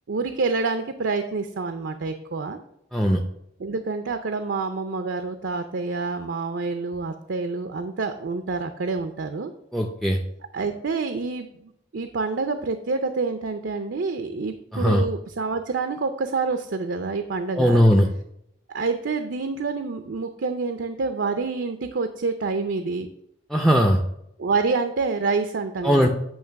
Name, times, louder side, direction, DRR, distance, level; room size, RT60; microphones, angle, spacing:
voice 1, 0.1-2.6 3.6-9.5 10.5-17.8 18.7-23.1 24.4-26.1, right 4 dB, 75° right, 7 dB, 0.5 m, -27 dB
voice 2, 9.7-10.2 14.7-15.0 17.6-18.1 23.5-24.0 25.8-26.1, equal, ahead, 3 dB, 0.5 m, -18 dB
8.8 x 3.3 x 5.7 m, 0.76 s
head